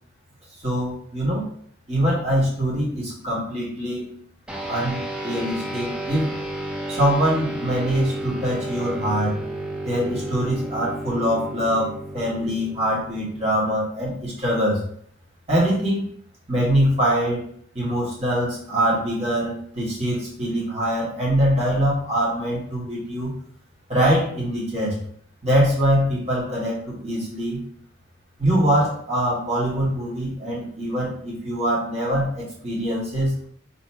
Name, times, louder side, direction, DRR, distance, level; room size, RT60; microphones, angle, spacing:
voice 1, 0.6-1.5 1.9-4.1 4.7-6.4 6.9-9.4 9.8-14.8 15.5-16.1 16.5-17.4 17.7-23.3 23.9-25.0 25.4-27.6 28.4-33.5, equal, 30° right, -6 dB, 1.5 m, -23 dB
sound 1, 4.5-14.2, right 1 dB, 5° right, 0.4 m, -32 dB
3.0 x 2.9 x 4.3 m, 0.62 s
head